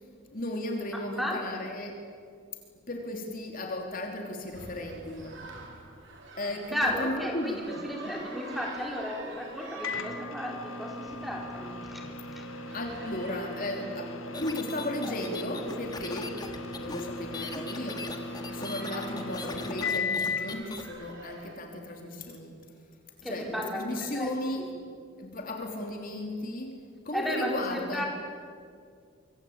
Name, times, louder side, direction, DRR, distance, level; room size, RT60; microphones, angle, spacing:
voice 1, 0.3-2.0 2.9-5.4 6.4-8.1 12.7-16.4 16.8-22.6 23.2-24.8 25.2-28.0, left 1 dB, 40° left, 2 dB, 3.1 m, -35 dB
sound 1, 4.5-21.6, right 2 dB, 60° right, 4.8 m, -48 dB
voice 2, 6.7-12.0 12.3-12.5 23.2-24.3 24.6-24.7 27.1-28.0, equal, ahead, 0 dB, 4.5 m, -34 dB
Microwave oven, 9.8-20.6, left 3 dB, 80° left, 1.6 m, -37 dB
sound 2, 14.3-20.8, left 3 dB, 20° left, 2.0 m, -40 dB
25.0 x 24.5 x 8.8 m, 2.2 s
head